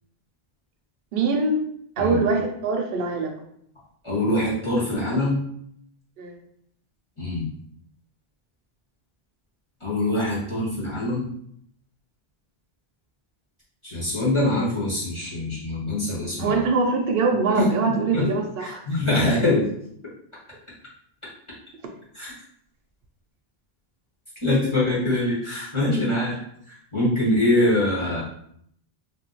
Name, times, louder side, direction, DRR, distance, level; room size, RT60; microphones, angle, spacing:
voice 1, 1.1-1.6 2.0-3.3 6.2-6.4 16.4-18.8, right 3 dB, 70° right, 2 dB, 0.7 m, -23 dB
voice 2, 4.0-5.4 7.2-7.5 9.8-11.3 13.8-16.6 17.6-18.3 18.6-19.7 22.1-22.3 24.4-26.3 26.7-28.2, left 1 dB, 30° left, -8 dB, 0.9 m, -24 dB
2.5 x 2.2 x 3.8 m, 0.70 s
omnidirectional pair, 1.0 m